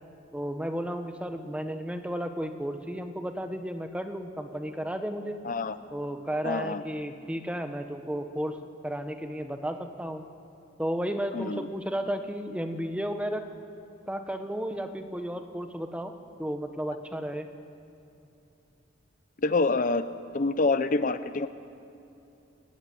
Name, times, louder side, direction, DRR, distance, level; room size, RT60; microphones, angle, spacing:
voice 1, 0.3-5.4 5.9-8.6 8.8-10.2 10.8-13.5 14.1-16.1 16.4-17.5, equal, 5° right, 7 dB, 1.1 m, -33 dB
voice 2, 5.4-5.8 6.4-6.8 11.3-11.7 19.4-20.0 20.3-21.5, left 3 dB, 45° left, 12 dB, 0.6 m, -26 dB
20.5 x 14.5 x 9.4 m, 2.9 s
head